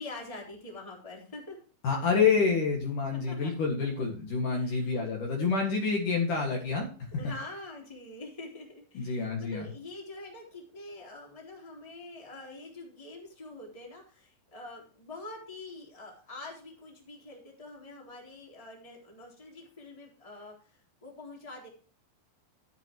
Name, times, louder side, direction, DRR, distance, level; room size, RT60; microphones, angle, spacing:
voice 1, 0.0-1.6 3.1-3.5 4.5-5.0 7.1-21.7, left 2 dB, 10° left, -1 dB, 3.1 m, -45 dB
voice 2, 1.8-6.9 8.9-9.7, left 5 dB, 55° left, 0 dB, 2.9 m, -28 dB
12.5 x 10.5 x 3.0 m, 0.41 s
omnidirectional pair, 5.2 m